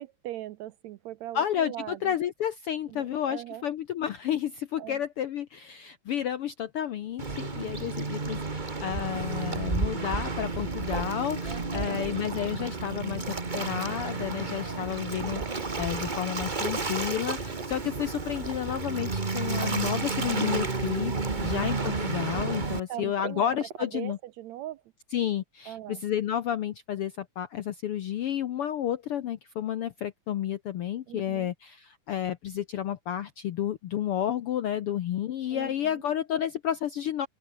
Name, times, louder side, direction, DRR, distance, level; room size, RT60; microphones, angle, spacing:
voice 1, 0.0-2.1 2.9-3.6 4.8-5.0 11.5-12.0 21.3-21.7 22.9-24.8 25.7-26.0 31.1-31.5 35.5-35.7, right 13 dB, 75° right, 1.8 m, -40 dB
voice 2, 1.3-13.2 13.5-21.1 21.4-24.2 25.1-37.3, left 10 dB, 70° left, 1.3 m, -31 dB
Waves surf, 7.2-22.8, right 3 dB, 25° right, 1.0 m, -31 dB
sound 1, 15.2-16.6 17.0-19.2 20.0-20.5 21.0-21.1 21.8-22.2 22.5-22.6 22.9-24.0, right 6 dB, 55° right, 4.3 m, -42 dB
open air
omnidirectional pair, 3.6 m